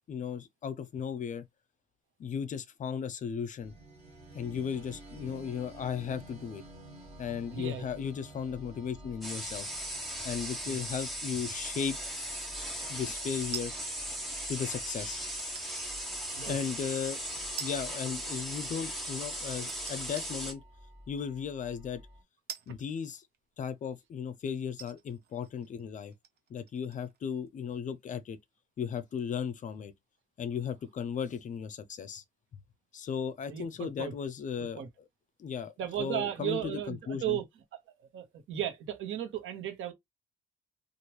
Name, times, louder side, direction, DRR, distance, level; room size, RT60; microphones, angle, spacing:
voice 1, 0.1-1.5 2.2-3.7 4.3-6.6 7.2-9.7 10.2-12.0 12.9-13.7 14.5-15.2 16.5-17.2 17.6-20.6 21.1-22.0 22.7-23.3 23.6-26.1 26.5-28.4 28.8-29.9 30.4-32.2 32.9-34.8 35.4-37.4, left 7 dB, 40° left, 0.4 m, -36 dB
sound 1, 3.6-22.2, equal, 30° right, 1.4 m, -52 dB
voice 2, 7.5-7.9 10.7-10.8 16.3-16.5 33.5-34.1 34.8-34.9 35.8-37.4 38.0-39.9, right 11 dB, 80° right, 1.0 m, -35 dB
sound 2, 9.2-20.5, equal, ahead, 1.2 m, -38 dB
sound 3, 13.5-14.1 15.4-15.9 16.5-16.6 17.6-18.0 18.3-18.4 19.7-20.3 21.2-21.3 22.5-23.6 24.2-24.3 24.7-27.2 27.5-27.6, right 8 dB, 55° right, 0.6 m, -45 dB
3.0 x 2.4 x 3.0 m
cardioid pair, 175°, 20 cm